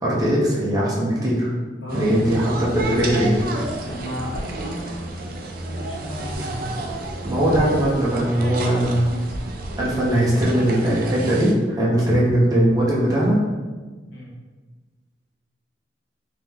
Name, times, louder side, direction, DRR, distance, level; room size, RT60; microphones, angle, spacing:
voice 1, 0.0-1.5 1.9-3.4 6.4-6.5 7.2-9.1 9.8-13.4, right 1 dB, 20° right, -6 dB, 0.7 m, -20 dB
sound 1, 1.9-11.5, right 1 dB, 55° right, 0.5 m, -31 dB
voice 2, 3.8-5.2 5.7-6.4 14.1-14.3, equal, 80° left, -3 dB, 1.0 m, -34 dB
3.5 x 2.9 x 3.5 m, 1.3 s
head